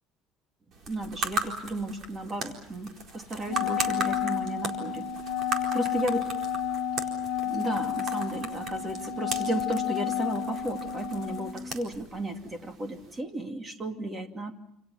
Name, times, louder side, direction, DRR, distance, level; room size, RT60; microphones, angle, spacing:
sound 1, 0.7-13.2, right 2 dB, 40° right, 4.4 m, -38 dB
voice 1, 0.9-5.1 5.7-6.3 7.4-14.5, right 1 dB, 15° right, 5 dB, 2.5 m, -34 dB
Wind instrument woodwind instrument, 3.4-11.6, left 9 dB, 70° left, 1.5 m, -31 dB
28.5 x 28.5 x 5.7 m, 0.76 s
cardioid pair, 170°, 0 cm